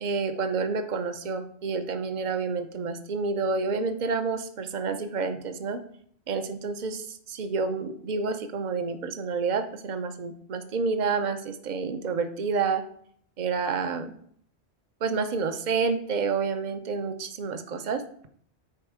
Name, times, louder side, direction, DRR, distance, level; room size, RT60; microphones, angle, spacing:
voice 1, 0.0-5.8 6.3-12.8 13.4-14.1 15.0-18.0, right 4 dB, 45° right, 8 dB, 0.8 m, -29 dB
10.5 x 4.4 x 4.8 m, 0.64 s
omnidirectional pair, 1.1 m